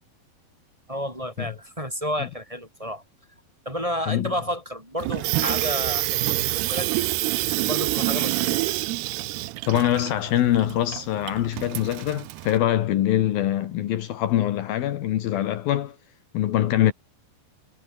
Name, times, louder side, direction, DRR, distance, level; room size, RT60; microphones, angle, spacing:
voice 1, 0.9-3.0 3.7-7.1 7.5-8.6, equal, 10° right, 5.6 m, -31 dB
Water tap faucet / Sink (filling or washing), 5.0-12.6, right 19 dB, 90° right, 2.8 m, -27 dB
voice 2, 9.7-16.0 16.3-16.9, left 12 dB, 70° left, 3.0 m, -23 dB
omnidirectional pair, 4.6 m